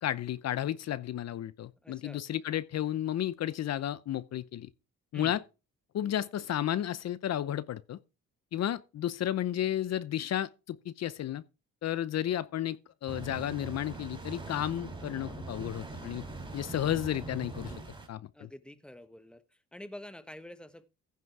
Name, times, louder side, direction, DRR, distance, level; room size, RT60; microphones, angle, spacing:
voice 1, 0.0-4.7 5.1-5.4 5.9-8.0 8.5-11.4 11.8-12.8 13.0-16.2 16.5-17.7 18.1-18.5, left 11 dB, 60° left, 0.7 m, -32 dB
voice 2, 1.8-2.2 5.1-5.4 18.3-19.4 19.7-20.9, left 1 dB, 5° left, 1.2 m, -47 dB
sound 1, 13.1-18.1, right 3 dB, 15° right, 4.2 m, -42 dB
15.0 x 6.1 x 4.6 m
cardioid pair, 90°, 30 cm